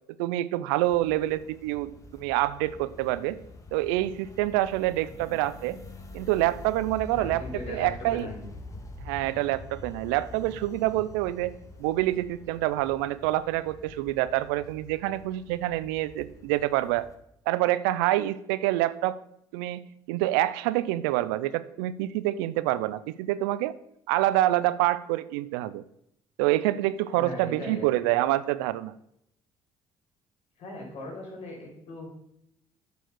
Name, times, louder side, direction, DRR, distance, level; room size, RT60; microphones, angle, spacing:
voice 1, 0.2-3.4 3.7-5.8 6.1-7.4 7.7-8.3 9.0-11.5 11.8-17.1 17.5-19.2 19.5-19.8 20.1-23.7 24.1-25.8 26.4-28.9, right 15 dB, 90° right, 16 dB, 0.4 m, -26 dB
sound 1, 0.8-17.1, left 2 dB, 25° left, 1.6 m, -46 dB
voice 2, 5.1-5.4 7.1-8.4 9.2-9.3 27.1-27.9 30.6-32.1, left 1 dB, 65° left, -1 dB, 3.8 m, -39 dB
8.1 x 4.6 x 5.9 m, 0.77 s
supercardioid pair, 65°, 12 cm